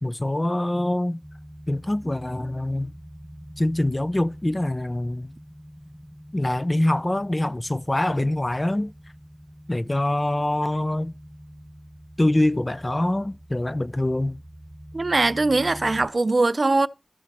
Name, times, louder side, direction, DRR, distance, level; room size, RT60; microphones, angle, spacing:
voice 1, 0.0-1.2 1.7-2.9 3.6-5.3 6.3-8.9 9.7-11.1 12.2-14.4, left 1 dB, 35° left, 0.5 m, -24 dB
sound 1, 1.2-16.1, equal, 15° right, 0.8 m, -44 dB
voice 2, 14.9-16.9, right 2 dB, 75° right, 0.5 m, -21 dB
13.5 x 5.8 x 4.3 m
wide cardioid pair, 40°, 0 cm